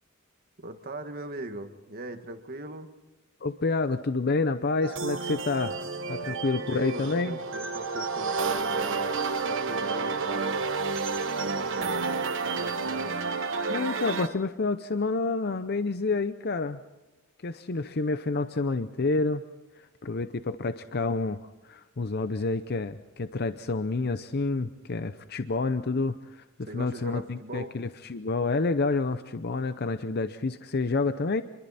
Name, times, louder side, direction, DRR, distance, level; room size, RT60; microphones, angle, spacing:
voice 1, 0.6-2.9 6.2-10.6 11.4-13.2 26.6-27.7, right 2 dB, 45° right, 7 dB, 1.7 m, -40 dB
voice 2, 3.4-5.8 6.1-7.4 13.7-16.8 17.4-19.4 19.8-31.4, left 3 dB, 50° left, 11 dB, 0.7 m, -29 dB
sound 1, 4.8-14.3, right 4 dB, 60° right, 1.3 m, -30 dB
28.0 x 22.5 x 4.2 m, 1.1 s
head